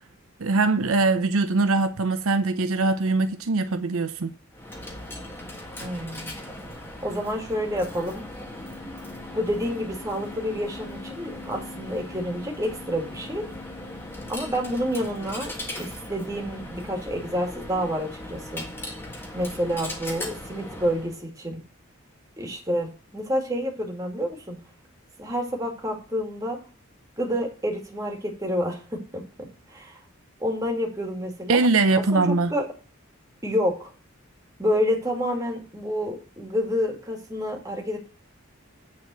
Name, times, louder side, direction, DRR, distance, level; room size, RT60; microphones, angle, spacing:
voice 1, 0.4-4.3 31.5-32.5, right 3 dB, 75° right, 0.7 m, -22 dB
Coin (dropping), 4.5-21.2, left 1 dB, 10° left, 1.6 m, -38 dB
voice 2, 5.8-6.3 7.0-8.2 9.3-13.4 14.3-18.6 19.3-21.6 22.4-24.6 25.2-26.6 27.2-29.2 29.7-30.0 30.4-31.6 32.1-32.2 32.5-32.7 33.4-33.9 34.6-38.1, equal, 15° right, 2.1 m, -28 dB
9.6 x 4.2 x 7.5 m
head